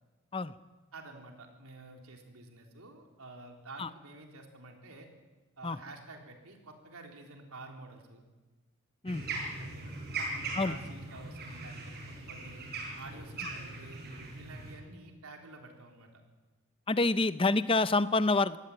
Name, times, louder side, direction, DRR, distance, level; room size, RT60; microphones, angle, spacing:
voice 1, 0.9-5.1 5.6-8.2 9.6-11.8 12.1-12.7 12.9-16.2, right 2 dB, 80° right, 2 dB, 3.8 m, -50 dB
sound 1, 9.1-14.7, right 3 dB, 45° right, 8.0 m, -40 dB
voice 2, 16.9-18.6, left 3 dB, 25° left, 14 dB, 0.6 m, -27 dB
22.5 x 17.0 x 8.8 m, 1.2 s
head